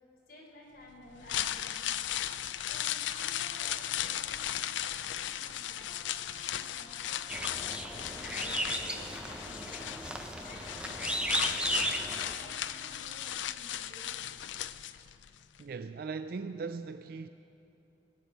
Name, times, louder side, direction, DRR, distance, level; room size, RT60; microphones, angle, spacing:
voice 1, 0.3-2.1 2.6-9.8 10.4-11.6 11.9-14.4, left 1 dB, 55° left, 3.8 m, -53 dB
sound 1, 1.1-15.3 15.6-15.7, left 11 dB, 85° left, 0.4 m, -36 dB
Wind instrument woodwind instrument, 5.8-11.8, left 1 dB, 20° left, 2.0 m, -57 dB
sound 2, 7.3-12.3, right 1 dB, 5° right, 0.6 m, -35 dB
voice 2, 15.6-17.3, right 4 dB, 50° right, 0.4 m, -39 dB
19.5 x 6.9 x 9.1 m
head